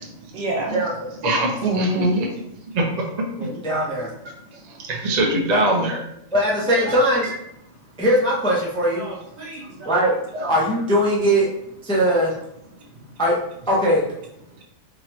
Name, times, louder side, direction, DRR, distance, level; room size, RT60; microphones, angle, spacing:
voice 1, 0.3-0.8 1.6-2.2 8.9-10.0, right 1 dB, 70° right, -2 dB, 1.3 m, -25 dB
voice 2, 1.2-1.9 2.2-2.3 2.7-2.8 4.8-6.0 6.8-6.9, right 1 dB, 45° right, 0 dB, 0.5 m, -21 dB
voice 3, 3.4-4.1 6.3-7.3 8.0-9.1 9.8-11.5 11.8-12.3 13.2-13.4 13.7-14.1, equal, 5° left, -5 dB, 0.4 m, -20 dB
3.7 x 3.1 x 3.0 m, 0.78 s
omnidirectional pair, 1.4 m